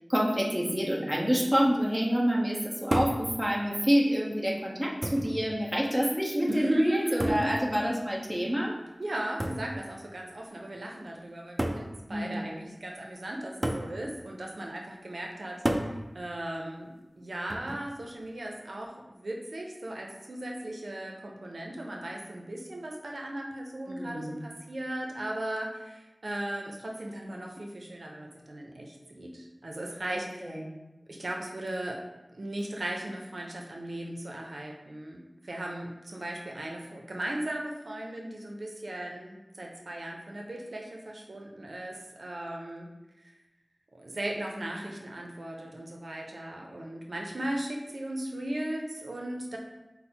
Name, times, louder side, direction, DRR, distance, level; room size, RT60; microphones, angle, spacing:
voice 1, 0.1-8.8 12.1-12.6 23.9-24.4 30.1-30.6, equal, 5° right, -3 dB, 0.9 m, -27 dB
sound 1, 2.9-3.3 4.3-4.4 5.0-5.4 7.2-7.6 9.4-9.7 10.7-10.8 11.6-11.9 13.6-13.9 15.6-16.0 17.5-17.9, right 1 dB, 20° right, 0.4 m, -30 dB
voice 2, 6.5-7.6 9.0-30.6 31.1-32.0 32.3-42.9 43.9-49.6, right 1 dB, 80° right, 0 dB, 0.5 m, -37 dB
5.2 x 2.1 x 4.3 m, 1.0 s
wide cardioid pair, 60°, 0 cm